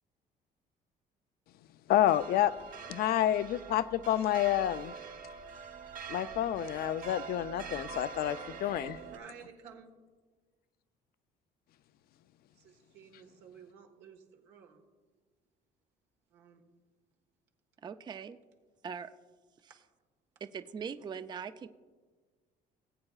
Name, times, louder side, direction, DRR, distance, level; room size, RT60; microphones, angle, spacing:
voice 1, 1.9-2.5 2.9-4.9 6.1-9.0, left 12 dB, 65° left, 14 dB, 0.4 m, -29 dB
sound 1, 1.9-9.2, right 6 dB, 50° right, 1.1 m, -44 dB
voice 2, 8.8-9.9 12.5-14.8 16.3-16.7, right 6 dB, 90° right, 2 dB, 1.5 m, -53 dB
voice 3, 17.8-18.4 18.8-19.1 20.4-21.7, right 6 dB, 25° right, 12 dB, 0.4 m, -41 dB
19.0 x 8.6 x 2.4 m, 1.4 s
cardioid pair, 110°, 17 cm